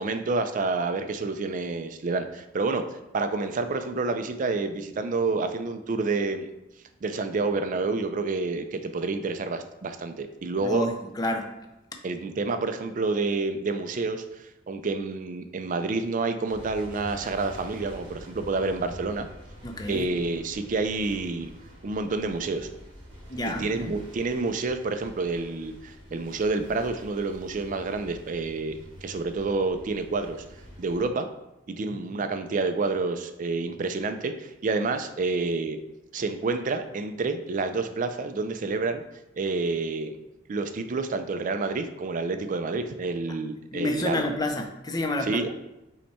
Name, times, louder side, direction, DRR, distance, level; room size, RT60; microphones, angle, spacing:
voice 1, 0.0-2.8 3.1-6.5 7.0-10.9 12.0-19.3 19.9-21.5 21.8-22.7 23.5-30.4 30.8-31.3 31.7-35.8 36.1-39.0 39.4-40.2 40.5-44.2 45.2-45.5, right 3 dB, 40° right, 8 dB, 0.4 m, -28 dB
voice 2, 10.6-11.5 19.6-20.1 23.3-24.0 43.7-45.4, left 1 dB, 20° left, 3 dB, 0.5 m, -29 dB
sound 1, 16.5-31.1, equal, 65° right, 1.6 m, -46 dB
5.6 x 2.2 x 4.2 m, 0.95 s
head